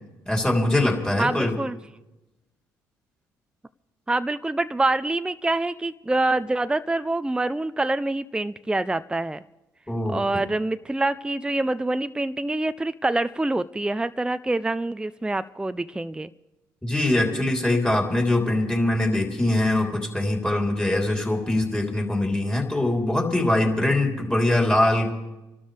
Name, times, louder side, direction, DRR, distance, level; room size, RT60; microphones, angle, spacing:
voice 1, 0.3-1.6 9.9-10.4 16.8-25.1, left 1 dB, 10° left, 0 dB, 3.4 m, -23 dB
voice 2, 1.2-1.8 4.1-9.4 10.1-16.3, right 2 dB, 10° right, 12 dB, 0.5 m, -26 dB
28.5 x 12.5 x 3.4 m, 1.0 s
hypercardioid pair, 55°, 9 cm